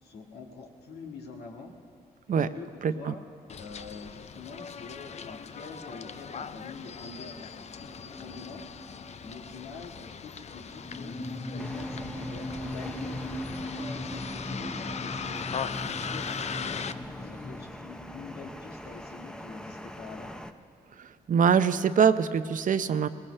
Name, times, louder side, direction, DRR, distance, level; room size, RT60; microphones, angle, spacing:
voice 1, 0.0-1.7 2.3-3.2 3.6-8.7 9.2-11.2 11.5-13.2 13.5-16.9 17.2-20.3, left 4 dB, 90° left, 0 dB, 1.8 m, -45 dB
voice 2, 2.8-3.1 21.0-23.1, right 7 dB, 55° right, 12 dB, 0.6 m, -24 dB
Bus, 3.5-16.9, left 6 dB, 45° left, 0.5 m, -39 dB
sound 1, 7.7-9.6 9.8-9.9 10.6-17.6, left 1 dB, 25° left, 2.8 m, -39 dB
sound 2, 11.6-20.5, left 1 dB, 5° left, 0.7 m, -43 dB
19.5 x 19.0 x 3.3 m, 2.2 s
cardioid pair, 80°, 16 cm